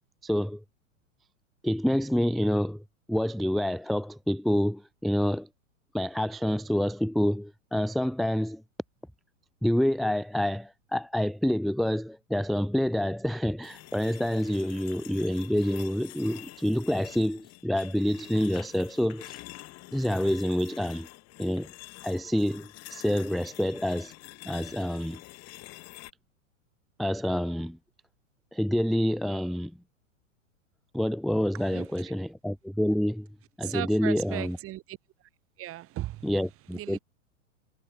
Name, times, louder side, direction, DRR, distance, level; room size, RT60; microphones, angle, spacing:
voice 1, 0.2-0.6 1.6-2.8 3.1-5.5 5.9-8.6 9.6-19.4 19.9-21.1 21.4-21.7 22.0-24.1 24.5-25.2 27.0-27.8 28.5-29.7 30.9-33.3 33.6-34.6 36.2-37.0, equal, ahead, 0.4 m, -27 dB
sound 1, 13.6-26.1, left 20 dB, 40° left, 3.8 m, -47 dB
voice 2, 31.5-32.2 33.6-35.0 35.6-36.3 36.7-37.0, right 15 dB, 35° right, 4.5 m, -37 dB
hypercardioid pair, 110°, 40 cm